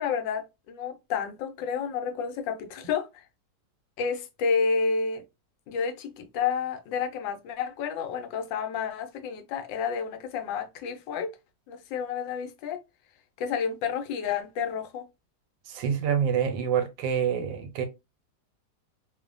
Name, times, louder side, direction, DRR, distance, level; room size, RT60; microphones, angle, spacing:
voice 1, 0.0-3.2 4.0-5.2 5.7-11.3 11.7-12.8 13.4-15.1, left 6 dB, 80° left, 1.2 m, -30 dB
voice 2, 15.7-17.8, right 8 dB, 80° right, 1.3 m, -26 dB
3.1 x 2.1 x 2.4 m
omnidirectional pair, 2.0 m